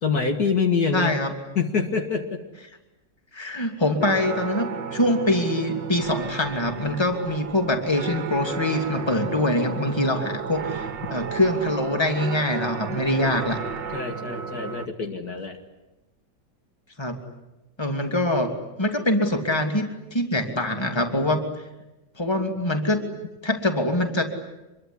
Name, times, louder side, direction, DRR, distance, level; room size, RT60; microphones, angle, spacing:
voice 1, 0.0-1.1 1.6-2.4 13.9-15.6, left 5 dB, 55° left, 5 dB, 2.4 m, -25 dB
voice 2, 0.9-1.3 3.3-13.6 17.0-17.2 17.8-18.5 18.8-21.4 22.2-23.0 23.4-24.2, left 1 dB, 15° left, 5 dB, 2.8 m, -24 dB
sound 1, 4.0-14.9, right 6 dB, 75° right, 2.0 m, -33 dB
26.0 x 23.0 x 10.0 m, 0.98 s
omnidirectional pair, 2.0 m